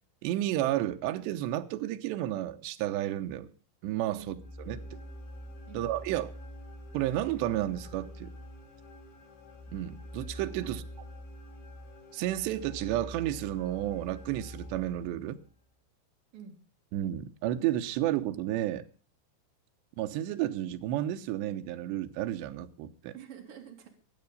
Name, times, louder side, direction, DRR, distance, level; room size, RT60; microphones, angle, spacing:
voice 1, 0.2-3.5 3.8-4.4 4.7-5.0 5.7-6.3 6.9-8.3 9.7-10.8 12.1-15.4 16.9-18.8 20.0-23.1, right 13 dB, 80° right, 3.1 m, -32 dB
sound 1, 4.2-15.5, equal, 75° left, 6.9 m, -46 dB
voice 2, 23.1-23.9, right 6 dB, 50° right, 4.2 m, -47 dB
22.5 x 8.2 x 5.4 m
omnidirectional pair, 5.3 m